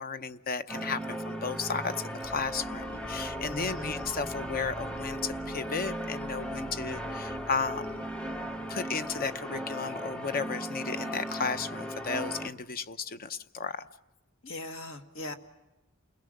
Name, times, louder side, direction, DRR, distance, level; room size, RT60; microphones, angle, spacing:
voice 1, 0.0-1.9 2.2-8.0 8.7-13.9, left 5 dB, 45° left, 11 dB, 0.7 m, -34 dB
sound 1, 0.7-12.5, equal, 5° left, 1.0 m, -37 dB
sound 2, 2.2-9.6, right 1 dB, 90° left, 2.7 m, -49 dB
voice 2, 3.5-4.0 14.4-15.3, left 1 dB, 65° left, 6 dB, 1.7 m, -39 dB
29.0 x 20.5 x 6.5 m, 1.0 s
head